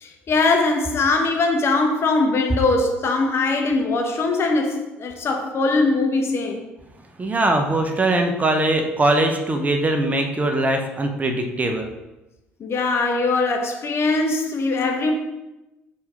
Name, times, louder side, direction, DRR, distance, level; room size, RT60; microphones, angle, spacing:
voice 1, 0.0-6.6 12.6-15.1, left 3 dB, 40° left, 1.1 m, -21 dB
voice 2, 7.2-11.9, right 2 dB, 25° right, 0.9 m, -21 dB
4.7 x 4.2 x 5.0 m
figure-of-eight pair, 55°, 6 cm